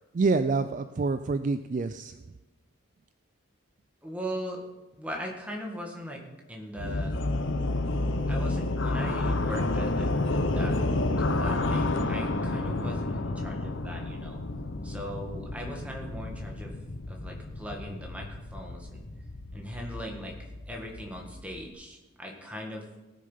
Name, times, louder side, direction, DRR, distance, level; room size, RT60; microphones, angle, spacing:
voice 1, 0.1-2.1, right 4 dB, 40° right, 11 dB, 0.3 m, -27 dB
voice 2, 4.0-4.6 5.0-6.2 6.5-7.2 8.3-10.8 11.2-14.4 14.8-16.7 17.1-19.0 19.5-20.3 20.7-22.8, equal, 5° right, 0 dB, 1.7 m, -39 dB
sound 1, 6.8-21.7, left 2 dB, 65° left, 0.8 m, -30 dB
18.0 x 6.5 x 5.6 m, 1.1 s
head